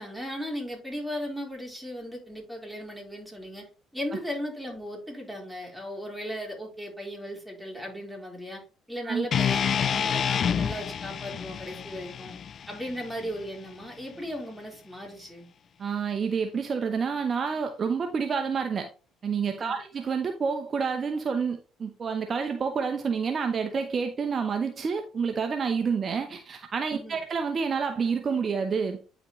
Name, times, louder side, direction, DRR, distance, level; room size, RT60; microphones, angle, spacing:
voice 1, 0.0-3.6 3.9-8.6 8.9-12.3 12.7-15.5 19.6-19.7 26.9-27.2, equal, 5° right, -2 dB, 4.2 m, -37 dB
sound 1, 9.3-13.5, left 8 dB, 50° left, 0.3 m, -28 dB
voice 2, 15.8-18.9 19.2-29.0, right 5 dB, 40° right, 5 dB, 0.8 m, -28 dB
9.6 x 5.1 x 3.1 m, 0.35 s
supercardioid pair, 75°, 0 cm